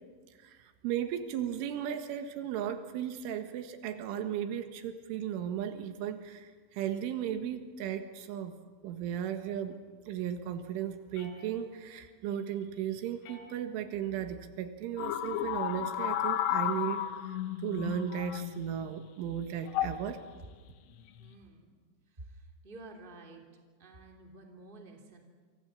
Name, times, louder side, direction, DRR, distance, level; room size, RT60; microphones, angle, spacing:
voice 1, 0.4-8.6 8.8-9.8 10.1-17.1 17.6-20.2, right 9 dB, 90° right, 8 dB, 4.0 m, -36 dB
sound 1, 11.1-12.0 13.2-14.0 15.2-16.0, left 4 dB, 45° left, 3.5 m, -56 dB
sound 2, 15.0-18.8 19.7-20.0 21.0-21.3, left 11 dB, 75° left, 3.2 m, -33 dB
voice 2, 21.2-21.8 22.1-23.4 23.8-25.2, right 2 dB, 15° right, 2 dB, 2.3 m, -51 dB
28.0 x 24.5 x 7.3 m, 1.5 s
omnidirectional pair, 5.5 m